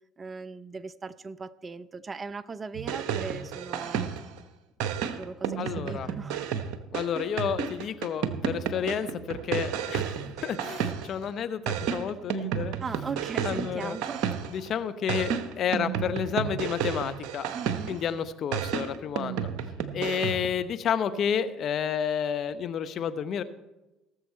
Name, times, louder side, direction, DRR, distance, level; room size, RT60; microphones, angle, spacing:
voice 1, 0.2-4.1 5.2-6.4 10.4-10.5 12.8-14.3 17.5-18.0, right 5 dB, 30° right, 17 dB, 0.5 m, -38 dB
sound 1, 2.7-4.4 4.8-11.2 11.7-14.7 15.1-18.1 18.5-20.6, right 8 dB, 65° right, 1.0 m, -32 dB
voice 2, 5.6-6.1 6.9-12.8 13.4-14.0 14.5-17.5 17.9-19.5 19.9-23.4, left 8 dB, 50° left, 12 dB, 0.8 m, -30 dB
18.0 x 7.0 x 4.4 m, 1.0 s
hypercardioid pair, 65°, 0 cm